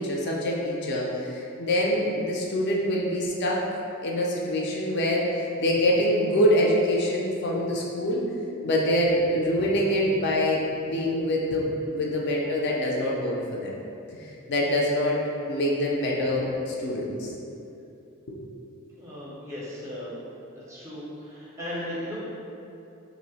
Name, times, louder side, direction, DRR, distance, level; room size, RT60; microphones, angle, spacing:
voice 1, 0.0-3.6 4.0-8.2 8.6-13.7 14.1-15.2 15.5-17.3 18.3-18.4, equal, 50° left, -3 dB, 0.4 m, -25 dB
voice 2, 18.9-20.2 20.5-22.2, left 1 dB, 15° right, -7 dB, 0.5 m, -36 dB
2.5 x 2.0 x 3.9 m, 2.7 s
head